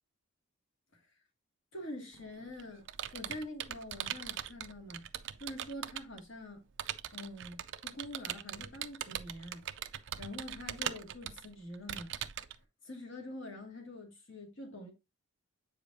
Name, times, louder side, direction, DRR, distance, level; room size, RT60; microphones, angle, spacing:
voice 1, 1.7-2.9 3.1-5.0 5.4-6.7 7.1-9.6 10.2-12.1 12.8-14.9, left 1 dB, 55° left, 2.1 m, -45 dB
Computer keyboard, 2.1-6.2 6.8-12.6, right 10 dB, 55° right, 0.4 m, -41 dB
7.9 x 5.0 x 2.7 m
head